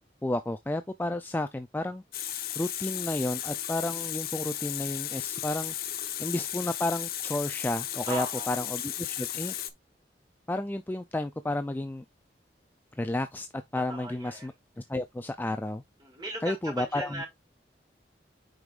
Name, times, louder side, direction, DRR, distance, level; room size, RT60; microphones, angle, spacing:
voice 1, 0.2-2.0 2.6-5.7 6.2-9.5 10.5-12.0 13.0-13.5 13.7-14.5 14.9-15.8 16.4-17.2, left 1 dB, 10° left, 0.3 m, -31 dB
Water tap faucet, 2.1-9.7, left 12 dB, 55° left, 0.8 m, -35 dB
voice 2, 8.1-8.6 13.7-14.5 16.0-17.3, right 2 dB, 25° right, 3.8 m, -38 dB
7.8 x 5.3 x 2.4 m
head